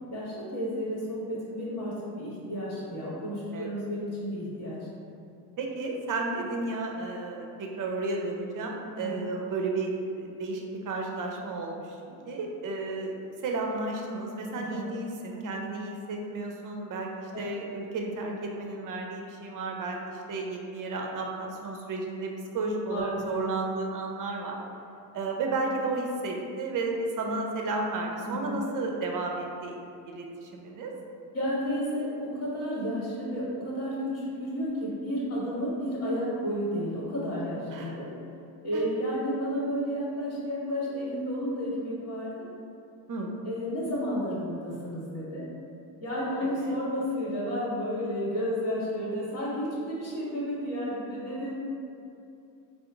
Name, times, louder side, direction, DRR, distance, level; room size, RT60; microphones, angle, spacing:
voice 1, 0.1-4.8 8.9-9.2 14.5-14.9 22.9-23.2 28.2-28.6 31.3-38.1 38.6-42.5 43.4-45.5 46.0-51.5, equal, 30° left, -7 dB, 1.4 m, -32 dB
voice 2, 3.5-3.8 5.6-24.6 25.1-29.8 30.1-30.9 37.7-37.9 38.7-38.8 43.1-43.3 46.4-46.8, right 3 dB, 40° right, 1 dB, 0.6 m, -33 dB
3.6 x 2.0 x 3.4 m, 2.6 s
supercardioid pair, 65°, 48 cm